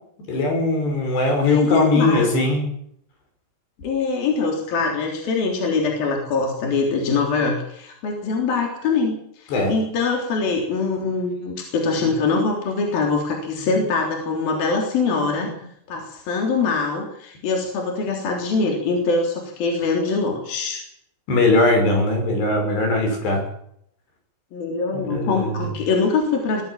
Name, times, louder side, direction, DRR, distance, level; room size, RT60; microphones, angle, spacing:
voice 1, 0.3-2.6 9.5-9.7 12.0-12.1 21.3-23.4 25.0-25.7, left 2 dB, 75° left, 3 dB, 8.1 m, -20 dB
voice 2, 1.4-2.3 3.8-15.5 15.9-20.8 24.5-26.6, left 4 dB, 60° left, 1 dB, 5.3 m, -23 dB
23.5 x 15.5 x 7.5 m, 0.70 s
omnidirectional pair, 4.8 m